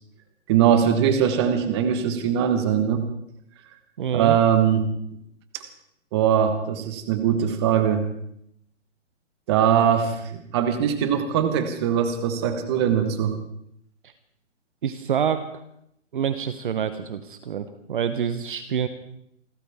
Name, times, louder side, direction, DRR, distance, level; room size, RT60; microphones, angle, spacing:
voice 1, 0.5-3.1 4.1-4.9 5.5-5.6 6.1-8.1 9.5-13.4, right 8 dB, 20° right, 8 dB, 1.3 m, -21 dB
voice 2, 4.0-4.4 14.8-15.4 16.1-18.9, right 8 dB, 45° right, 11 dB, 1.0 m, -26 dB
28.5 x 13.0 x 3.6 m, 0.75 s
hypercardioid pair, 170°, 36 cm